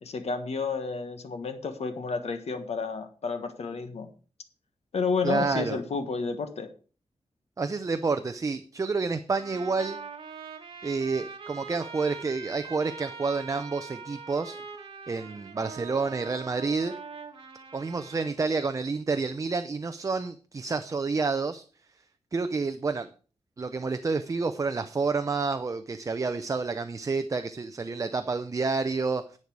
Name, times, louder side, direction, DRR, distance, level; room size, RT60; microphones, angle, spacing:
voice 1, 0.0-4.1 4.9-6.7, left 4 dB, 70° left, 8 dB, 1.5 m, -31 dB
voice 2, 5.2-5.8 7.6-10.0 10.8-14.6 15.1-16.9 17.7-21.6 22.3-23.1 23.6-29.4, right 4 dB, 30° right, 9 dB, 0.6 m, -29 dB
Trumpet, 9.3-18.4, right 5 dB, 50° right, 1.8 m, -43 dB
10.5 x 8.6 x 4.7 m, 0.38 s
wide cardioid pair, 170°, 11 cm